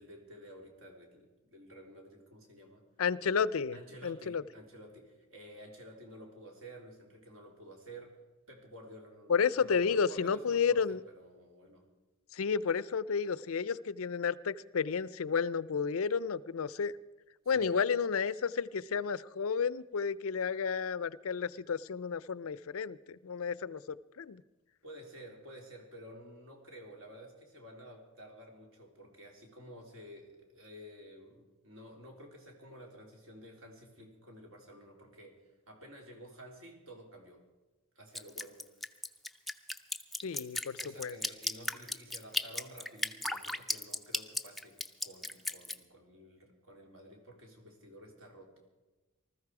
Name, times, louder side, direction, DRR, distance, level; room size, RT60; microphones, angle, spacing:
voice 1, 0.0-2.8 3.7-8.2 8.5-11.9 17.5-17.8 24.8-35.4 35.7-37.4 38.0-38.6 40.8-48.6, equal, 60° right, 1 dB, 3.5 m, -52 dB
voice 2, 3.0-3.8 4.0-4.4 9.3-11.0 12.3-16.9 17.5-24.4 40.2-41.1, left 6 dB, 65° left, 18 dB, 0.5 m, -32 dB
Drip, 38.1-45.8, left 1 dB, ahead, 0.5 m, -35 dB
19.5 x 14.0 x 4.8 m, 1.2 s
head